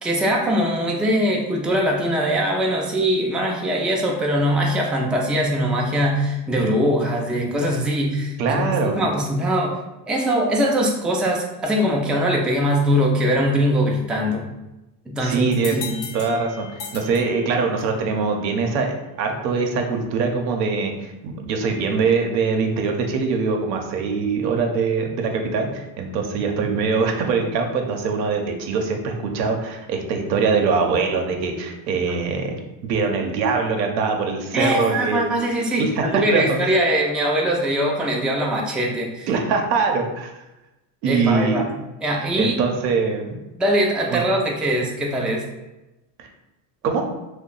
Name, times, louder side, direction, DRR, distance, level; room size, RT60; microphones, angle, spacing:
voice 1, 0.0-8.7 8.9-9.8 10.1-14.5 15.1-16.1 34.5-39.3 41.0-41.7 42.0-42.5 43.6-45.5, equal, ahead, -1 dB, 0.3 m, -22 dB
voice 2, 8.4-9.0 15.2-15.8 16.1-32.5 32.8-35.2 35.8-36.6 39.3-40.3 41.0-41.6 42.4-43.4 44.1-44.2 46.2-46.3 46.8-47.0, right 4 dB, 90° right, 3 dB, 0.7 m, -23 dB
sound 1, 15.5-18.1, left 5 dB, 70° left, 0.9 m, -37 dB
2.7 x 2.2 x 3.8 m, 1.0 s
hypercardioid pair, 80°, 49 cm